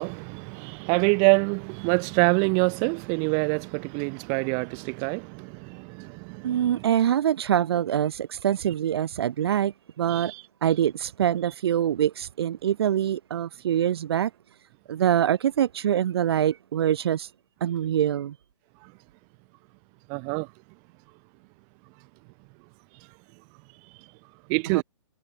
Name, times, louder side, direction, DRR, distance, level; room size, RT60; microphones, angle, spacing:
voice 1, 0.0-6.8 10.1-10.4 20.1-20.5 24.5-24.8, right 40 dB or more, 25° right, 3.6 m, -26 dB
voice 2, 6.4-10.3 10.6-14.3 14.9-17.3 17.6-18.3 24.7-24.8, right 10 dB, 55° right, 1.0 m, -24 dB
hypercardioid pair, 165°, 16 cm